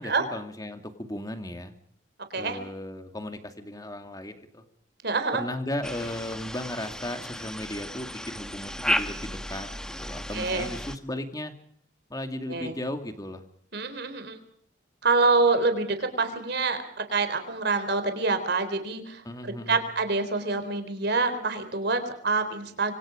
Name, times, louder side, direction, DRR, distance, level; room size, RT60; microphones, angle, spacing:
voice 1, 0.0-1.7 2.3-4.6 5.3-9.7 10.0-11.5 12.1-13.4 19.2-19.8, left 1 dB, 20° left, 7 dB, 2.3 m, -36 dB
voice 2, 5.0-5.4 10.3-10.7 12.5-12.8 13.7-14.4 15.0-23.0, right 3 dB, 55° right, 8 dB, 3.8 m, -26 dB
sound 1, 5.8-11.0, left 1 dB, 5° left, 1.3 m, -33 dB
26.0 x 25.0 x 5.1 m, 0.63 s
head